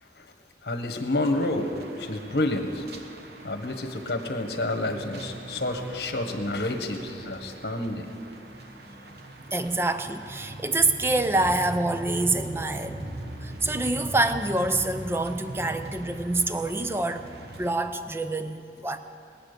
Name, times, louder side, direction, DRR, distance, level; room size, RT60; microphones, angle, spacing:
voice 1, 0.6-2.8 3.4-8.1, left 2 dB, 70° left, 5 dB, 1.3 m, -29 dB
sound 1, 1.2-17.7, right 1 dB, 65° right, 1.2 m, -40 dB
voice 2, 9.5-13.0 13.4-17.3 17.6-19.0, right 2 dB, 15° right, 9 dB, 0.5 m, -26 dB
20.5 x 8.5 x 6.7 m, 2.6 s
head